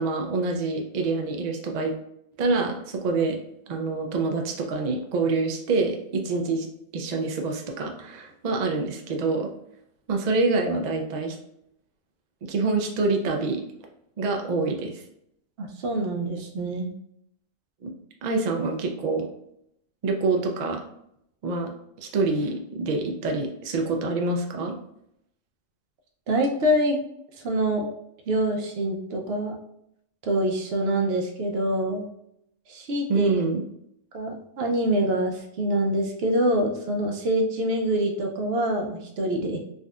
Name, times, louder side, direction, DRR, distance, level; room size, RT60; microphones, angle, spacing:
voice 1, 0.0-1.9 2.4-3.4 3.7-6.7 6.9-9.5 10.1-11.4 12.4-13.6 14.2-15.0 17.8-17.9 18.2-19.3 20.0-20.8 21.4-21.7 22.0-24.7 33.1-33.6, right 3 dB, 80° right, 2 dB, 0.3 m, -26 dB
voice 2, 15.6-16.9 26.3-27.0 27.4-27.9 28.3-29.6 30.2-32.1 32.7-33.4 34.1-39.6, right 1 dB, 60° right, 2 dB, 0.7 m, -25 dB
3.5 x 2.6 x 2.3 m, 0.75 s
omnidirectional pair, 1.3 m